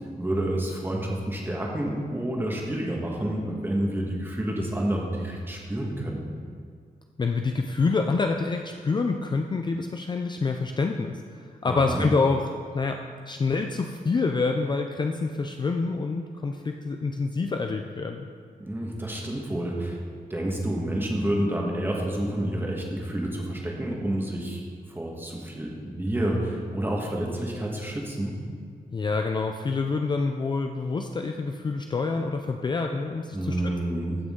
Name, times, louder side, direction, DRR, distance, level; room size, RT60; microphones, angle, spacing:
voice 1, 0.2-6.3 11.7-12.1 18.6-20.0 20.3-24.6 24.9-28.3 33.3-34.2, right 1 dB, 15° right, -1 dB, 1.4 m, -29 dB
voice 2, 7.2-12.5 12.7-13.0 13.3-18.3 28.9-33.6, left 4 dB, 30° left, 4 dB, 0.4 m, -27 dB
14.5 x 6.2 x 3.7 m, 2.1 s
wide cardioid pair, 155°, 15 cm